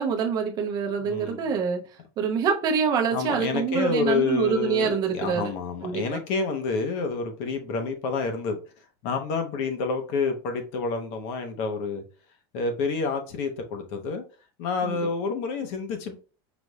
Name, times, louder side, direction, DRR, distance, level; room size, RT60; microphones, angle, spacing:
voice 1, 0.0-1.9 2.2-5.5 5.8-6.2 14.8-15.0, right 6 dB, 30° right, 0.8 m, -26 dB
voice 2, 1.0-1.5 3.1-8.6 9.0-12.0 12.5-14.2 14.6-16.1, left 4 dB, 50° left, 1.0 m, -28 dB
5.1 x 2.5 x 3.1 m
supercardioid pair, 165°, 14 cm